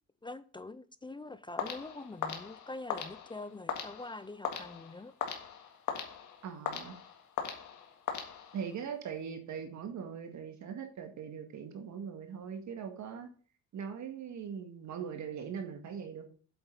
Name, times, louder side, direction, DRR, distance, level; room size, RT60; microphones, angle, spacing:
voice 1, 0.2-5.1, left 2 dB, 15° left, 0.5 m, -44 dB
sound 1, 1.6-8.8, left 7 dB, 75° left, 1.9 m, -40 dB
voice 2, 6.4-6.9 8.5-13.3 13.7-16.3, right 7 dB, 70° right, 1.9 m, -41 dB
8.1 x 7.8 x 3.9 m
cardioid pair, 90°, 30 cm